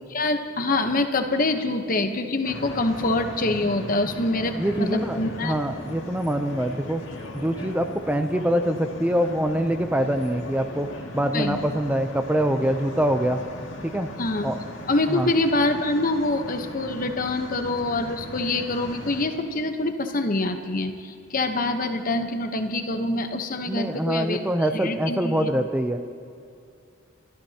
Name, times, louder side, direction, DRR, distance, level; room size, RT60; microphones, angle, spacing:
voice 1, 0.1-5.6 11.3-11.6 14.2-14.5 14.9-24.4 24.7-25.5, left 2 dB, 45° left, 6 dB, 0.9 m, -25 dB
sound 1, 2.4-19.3, left 1 dB, 65° left, 2.1 m, -38 dB
voice 2, 4.6-7.0 7.3-10.9 11.1-13.4 13.8-14.1 14.4-14.6 15.1-15.3 23.7-26.0, equal, 5° right, 6 dB, 0.5 m, -24 dB
30.0 x 14.0 x 2.9 m, 2.6 s
head